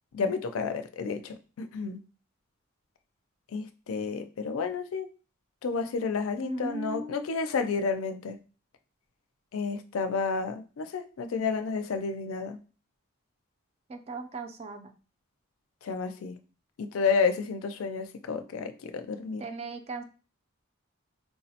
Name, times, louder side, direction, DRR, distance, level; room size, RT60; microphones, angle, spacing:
voice 1, 0.1-2.0 3.5-5.1 5.6-8.4 9.5-12.6 15.8-16.4 16.8-19.4, left 5 dB, 85° left, 8 dB, 0.4 m, -31 dB
voice 2, 6.4-7.3 13.9-14.9 19.4-20.0, right 2 dB, 30° right, 8 dB, 0.3 m, -37 dB
4.5 x 2.0 x 2.8 m, 0.36 s
head